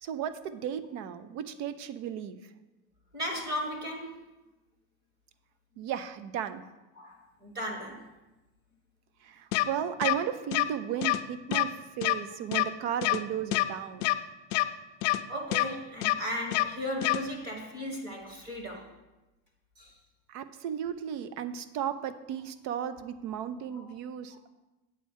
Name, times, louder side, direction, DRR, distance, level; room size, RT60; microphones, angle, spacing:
voice 1, 0.0-2.4 5.8-6.6 9.2-14.2 20.3-24.5, right 9 dB, 45° right, 12 dB, 0.6 m, -35 dB
voice 2, 3.1-4.2 7.0-8.1 15.3-18.9 19.8-19.9 23.7-23.9 24.3-24.4, equal, 25° right, 1 dB, 1.5 m, -36 dB
sound 1, 9.5-9.6 10.0-10.1 10.5-10.6 11.0-11.2 11.5-11.6 12.0-12.1 12.5-12.6 13.0-13.2 13.5-13.6 14.0-14.1 14.5-14.6 15.0-15.2 15.5-15.6 16.0-16.1 16.5-16.6 17.0-17.2, left 18 dB, 65° left, 0.5 m, -25 dB
8.5 x 4.3 x 7.2 m, 1.0 s
cardioid pair, 175°, 36 cm